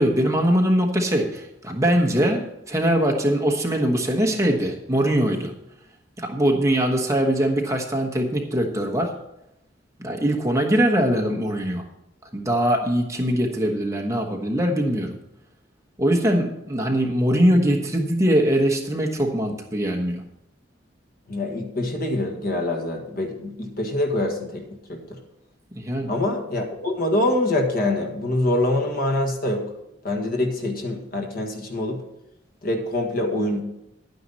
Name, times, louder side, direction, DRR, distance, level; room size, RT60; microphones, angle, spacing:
voice 1, 0.0-5.5 6.2-9.2 10.0-11.8 12.3-15.2 16.0-20.3 25.7-26.1, equal, 15° right, 1 dB, 1.2 m, -22 dB
voice 2, 21.3-25.2 26.1-29.7 30.0-32.0 32.6-33.6, left 1 dB, 50° left, 3 dB, 1.7 m, -25 dB
11.0 x 9.3 x 4.2 m, 0.86 s
head